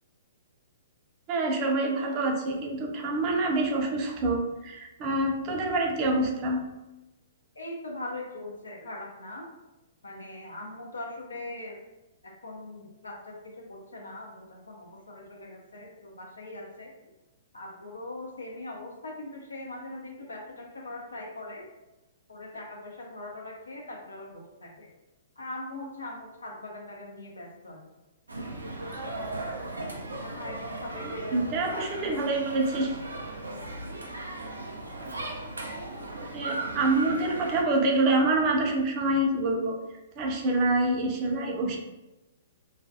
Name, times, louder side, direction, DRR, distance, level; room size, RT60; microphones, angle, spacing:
voice 1, 1.3-6.6 31.0-33.0 35.1-35.2 36.1-39.8 40.2-41.8, right 2 dB, 35° right, 1 dB, 0.5 m, -26 dB
voice 2, 7.6-9.5 10.0-11.8 12.2-16.9 17.5-21.7 22.3-24.9 25.4-27.8 30.2-32.3 32.7-32.9, left 2 dB, 80° left, -2 dB, 0.6 m, -41 dB
Playground noises in Luxembourg Gardens, 28.3-37.6, right 2 dB, 85° right, 0.4 m, -37 dB
2.4 x 2.2 x 2.5 m, 1.0 s
figure-of-eight pair, 120°, 0 cm